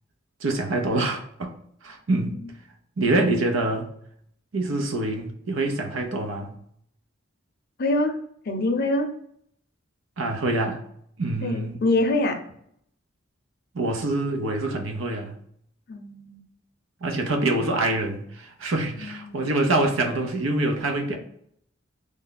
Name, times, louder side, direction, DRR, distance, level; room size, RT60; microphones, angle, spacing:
voice 1, 0.4-1.5 1.8-2.3 3.0-3.9 4.5-6.5 10.2-10.8 11.2-11.8 13.7-15.4 17.0-21.2, right 2 dB, 75° right, 0.6 m, -25 dB
voice 2, 7.8-8.2 8.5-9.1 11.4-12.4 15.9-16.4 19.0-19.4, left 2 dB, 50° left, 0.6 m, -25 dB
3.3 x 2.1 x 3.9 m
head